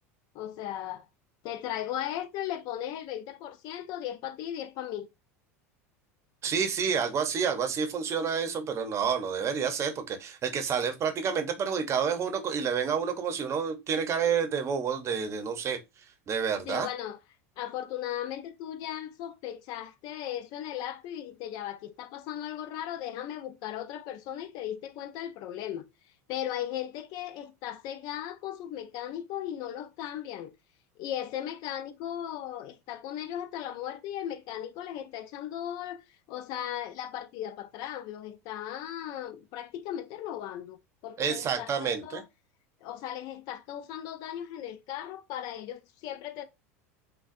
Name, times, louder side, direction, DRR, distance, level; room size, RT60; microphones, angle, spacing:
voice 1, 0.3-1.1 1.4-5.1 16.7-17.2 17.6-25.8 26.3-30.5 31.0-36.0 36.3-40.8 41.0-42.2 42.8-46.5, left 11 dB, 55° left, 0.5 m, -37 dB
voice 2, 6.4-15.8 16.3-16.9 41.2-42.2, right 6 dB, 35° right, 0.7 m, -29 dB
3.9 x 2.3 x 2.5 m
hypercardioid pair, 90°, 8 cm